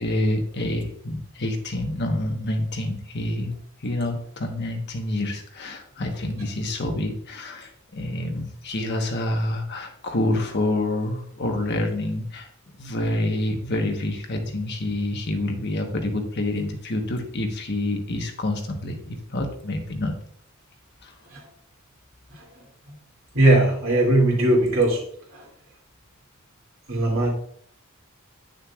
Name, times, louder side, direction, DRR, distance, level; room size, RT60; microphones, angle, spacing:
voice 1, 0.0-3.5 3.8-12.5 12.8-20.1 21.0-21.1, left 1 dB, 55° left, 3 dB, 1.2 m, -27 dB
voice 2, 23.3-25.0 25.3-25.5 26.9-27.3, right 1 dB, 70° right, -2 dB, 2.7 m, -19 dB
9.5 x 6.5 x 2.4 m, 0.62 s
head